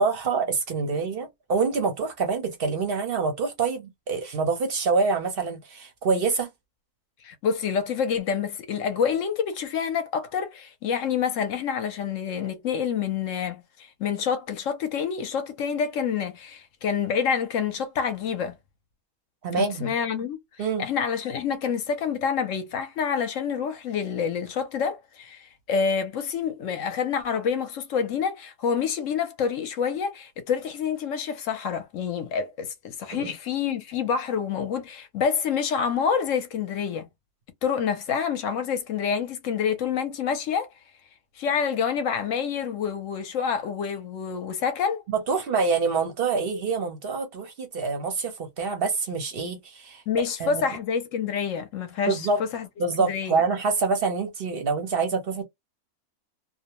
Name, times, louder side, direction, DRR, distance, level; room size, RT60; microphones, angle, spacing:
voice 1, 0.0-6.5 19.4-19.9 20.6-20.9 33.1-33.3 45.1-50.6 52.1-52.4 52.8-55.4, right 4 dB, 55° right, 0.6 m, -26 dB
voice 2, 7.2-18.5 19.5-37.1 37.6-40.7 41.4-45.0 50.1-52.3 52.5-52.7 53.0-53.4, left 7 dB, 65° left, 0.9 m, -27 dB
2.5 x 2.1 x 2.8 m
omnidirectional pair, 1.6 m